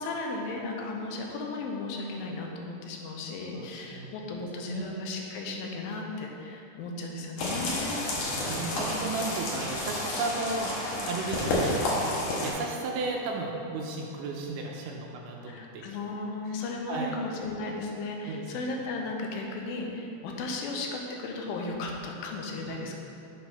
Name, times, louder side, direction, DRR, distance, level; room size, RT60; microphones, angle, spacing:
voice 1, 0.0-8.0 15.5-22.9, left 3 dB, 85° left, 1 dB, 2.5 m, -35 dB
voice 2, 3.5-4.1 4.7-5.0 8.1-10.7 11.0-15.8 16.4-16.6 16.9-17.2 18.2-18.5 22.7-22.9, right 3 dB, 80° right, 0 dB, 2.1 m, -35 dB
sound 1, 7.4-12.5, left 1 dB, 65° left, 2.3 m, -30 dB
6.6 x 4.4 x 5.5 m, 2.8 s
omnidirectional pair, 4.1 m